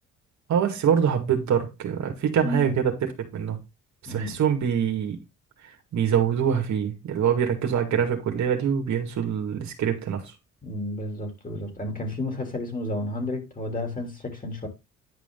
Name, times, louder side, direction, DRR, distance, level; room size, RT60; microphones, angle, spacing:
voice 1, 0.5-2.9 3.3-3.6 4.0-5.2 5.9-10.2, right 8 dB, 70° right, 2.1 m, -24 dB
voice 2, 2.4-2.7 4.1-4.4 7.6-7.7 10.6-14.7, left 1 dB, 25° left, 3.1 m, -31 dB
10.5 x 5.1 x 3.7 m
cardioid pair, 90°, 30 cm